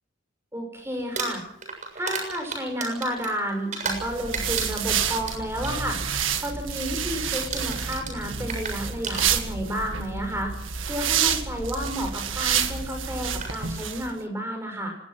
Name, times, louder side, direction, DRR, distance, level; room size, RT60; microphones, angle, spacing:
voice 1, 0.5-1.4 1.9-6.0 6.4-10.5 10.9-15.0, equal, 15° right, 4 dB, 6.5 m, -31 dB
Crumpling crinkling, 1.0-4.1 4.3-5.7 6.1-6.4 6.7-7.0 7.3-9.7 10.7-10.8 12.7-12.8 13.3-13.5, right 4 dB, 40° right, 7.0 m, -33 dB
sound 1, 3.9-14.1, right 7 dB, 85° right, 1.9 m, -29 dB
25.0 x 19.0 x 6.1 m, 0.67 s
head